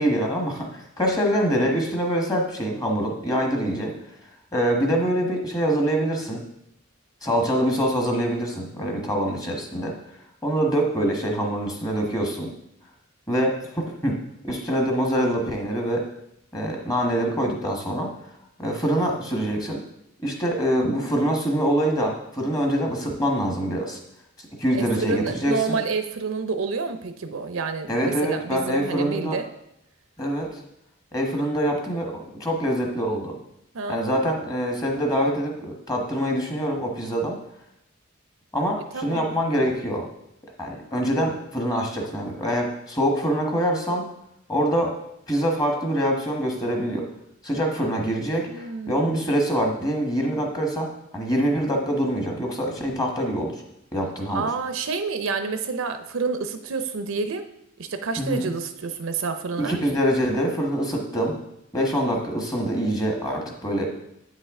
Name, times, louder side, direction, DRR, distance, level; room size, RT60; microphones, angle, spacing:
voice 1, 0.0-3.9 4.5-6.4 7.2-9.9 10.4-12.5 13.3-14.2 14.4-16.1 16.5-18.1 18.6-19.8 20.2-24.0 24.6-25.8 27.9-29.4 30.2-30.6 31.1-33.3 33.9-37.4 38.5-40.1 40.6-44.0 44.5-45.0 45.3-47.0 47.4-53.6 53.9-54.5 58.2-58.5 59.6-61.4 61.7-63.9, equal, 20° left, 1 dB, 1.3 m, -25 dB
voice 2, 24.7-29.5 33.7-34.5 38.9-39.3 48.5-49.3 54.3-57.4 57.8-59.8, right 4 dB, 70° right, 8 dB, 0.6 m, -29 dB
8.5 x 5.5 x 3.7 m, 0.81 s
head